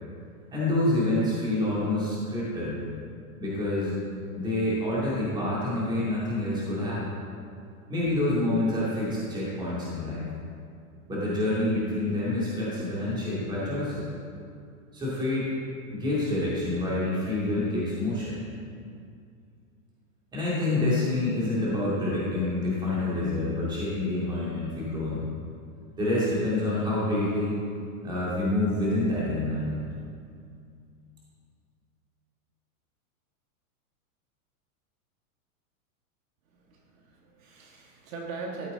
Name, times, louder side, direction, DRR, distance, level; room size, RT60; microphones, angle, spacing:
voice 1, 0.5-2.8 3.4-4.0 4.4-7.0 7.9-10.3 11.1-14.1 14.9-15.5 15.9-18.4 20.3-25.3 26.0-27.6 28.0-29.9, left 2 dB, 10° right, -8 dB, 2.3 m, -27 dB
voice 2, 36.5-38.7, right 4 dB, 60° right, 0 dB, 1.7 m, -40 dB
13.0 x 7.9 x 3.9 m, 2.3 s
supercardioid pair, 165°, 45 cm